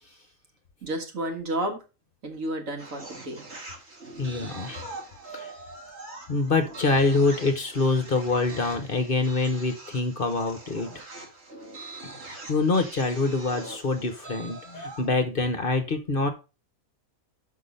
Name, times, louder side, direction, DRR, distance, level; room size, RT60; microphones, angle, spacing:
voice 1, 0.8-1.8 2.2-3.4, right 1 dB, 70° right, 4 dB, 2.0 m, -31 dB
sound 1, 2.8-15.1, right 2 dB, 50° right, 2.5 m, -43 dB
voice 2, 4.2-4.8 5.3-5.5 6.3-11.0 12.2-16.3, left 3 dB, 45° left, 7 dB, 1.1 m, -25 dB
6.1 x 5.7 x 5.3 m, 0.30 s
omnidirectional pair, 1.5 m